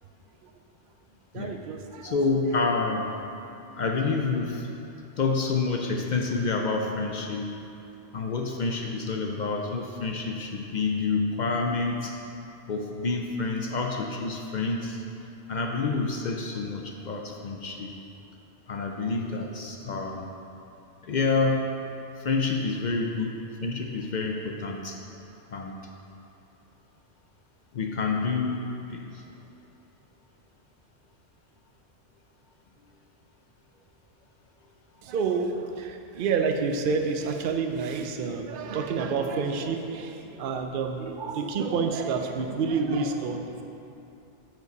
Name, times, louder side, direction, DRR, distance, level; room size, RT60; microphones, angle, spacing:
voice 1, 1.3-2.2 35.0-43.6, right 5 dB, 55° right, 5 dB, 0.6 m, -29 dB
voice 2, 2.0-3.1 3.8-4.7 5.2-7.5 8.1-12.2 12.7-15.0 15.5-17.9 18.7-20.3 21.0-21.7 22.2-25.0 25.5-25.8 27.7-28.6 28.9-29.2, left 4 dB, 55° left, 1 dB, 0.5 m, -28 dB
8.1 x 4.5 x 5.3 m, 2.8 s
omnidirectional pair, 1.3 m